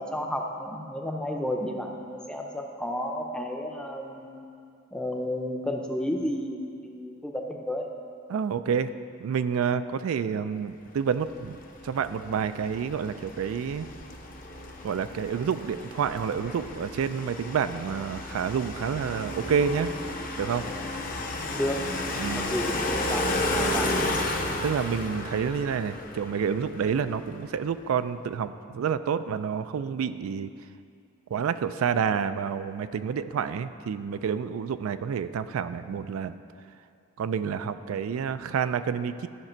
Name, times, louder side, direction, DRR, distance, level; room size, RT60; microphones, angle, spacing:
voice 1, 0.0-4.4 4.9-7.9 21.1-21.9 22.4-24.3, left 1 dB, 5° left, 2 dB, 0.5 m, -32 dB
voice 2, 8.3-8.9 9.2-11.6 11.8-13.9 14.8-19.9 20.4-20.7 22.2-22.5 24.6-30.5 31.3-36.3 37.2-39.3, right 7 dB, 85° right, 12 dB, 0.3 m, -28 dB
sound 1, 11.3-27.4, left 2 dB, 40° left, 0.7 m, -33 dB
12.5 x 5.9 x 4.4 m, 2.4 s
head